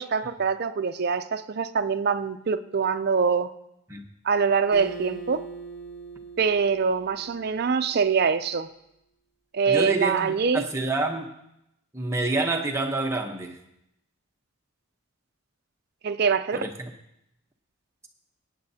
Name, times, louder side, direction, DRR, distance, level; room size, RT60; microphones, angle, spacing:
voice 1, 0.0-3.5 4.2-5.5 6.4-8.7 9.5-10.6 16.0-16.6, right 5 dB, 45° right, 10 dB, 0.4 m, -24 dB
Acoustic guitar, 4.7-8.2, right 3 dB, 85° left, 5.2 m, -41 dB
voice 2, 9.7-11.3 11.9-13.6 16.5-16.9, right 2 dB, 15° right, 1 dB, 0.9 m, -28 dB
18.0 x 9.0 x 2.8 m, 0.81 s
head